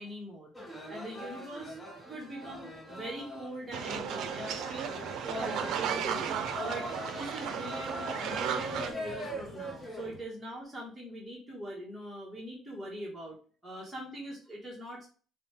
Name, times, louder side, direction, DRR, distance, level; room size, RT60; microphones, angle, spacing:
voice 1, 0.0-4.9 5.2-6.4 6.6-13.4 13.6-15.1, equal, 10° right, -5 dB, 1.2 m, -42 dB
sound 1, 0.5-10.2, equal, 15° left, 0.9 m, -42 dB
sound 2, 3.7-8.9, right 8 dB, 70° right, 0.5 m, -35 dB
5.1 x 2.2 x 3.0 m, 0.39 s
cardioid pair, 120°, 0 cm